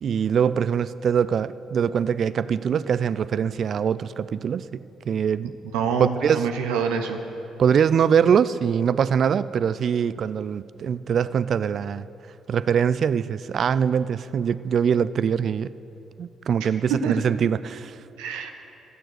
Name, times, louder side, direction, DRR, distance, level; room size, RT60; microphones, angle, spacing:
voice 1, 0.0-5.5 6.0-6.4 7.6-12.1 12.5-15.7 16.2-18.0, right 7 dB, 60° right, 16 dB, 0.3 m, -23 dB
voice 2, 5.7-7.2 17.0-17.2 18.2-18.5, right 6 dB, 85° right, 5 dB, 0.7 m, -26 dB
13.5 x 6.9 x 7.8 m, 2.9 s
hypercardioid pair, 50°, 0 cm